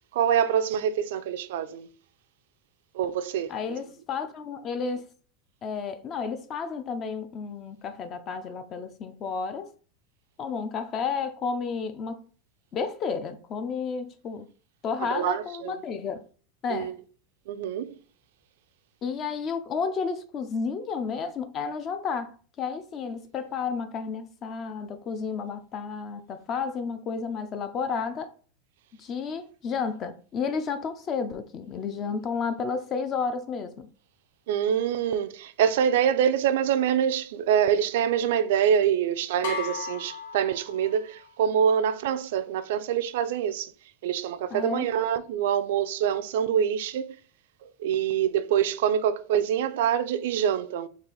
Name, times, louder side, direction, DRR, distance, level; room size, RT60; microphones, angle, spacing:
voice 1, 0.1-1.9 2.9-3.5 15.0-15.7 16.7-16.9 17.5-18.0 34.5-43.7 44.0-47.2 47.8-50.9, right 9 dB, 70° right, 0.4 m, -25 dB
voice 2, 3.5-5.1 5.6-9.7 10.4-12.2 12.7-14.5 14.8-16.2 16.6-16.9 19.0-28.3 29.0-33.9 44.5-44.9, left 5 dB, 25° left, 0.4 m, -32 dB
sound 1, 39.4-41.2, left 4 dB, 80° left, 1.1 m, -35 dB
4.1 x 2.4 x 3.8 m
supercardioid pair, 165°, 0 cm